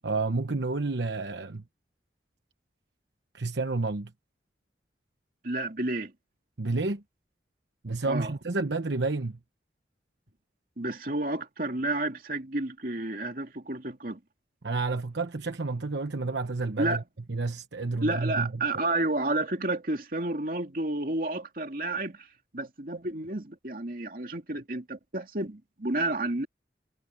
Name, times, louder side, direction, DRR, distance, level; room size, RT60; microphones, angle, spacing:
voice 1, 0.0-1.6 3.3-4.1 6.6-7.0 7.8-9.4 14.6-17.0 17.3-18.6, right 3 dB, 80° right, 1.0 m, -30 dB
voice 2, 5.4-6.1 8.0-8.3 10.8-14.2 16.8-17.0 18.0-22.3 22.5-26.5, right 2 dB, 50° right, 2.6 m, -31 dB
head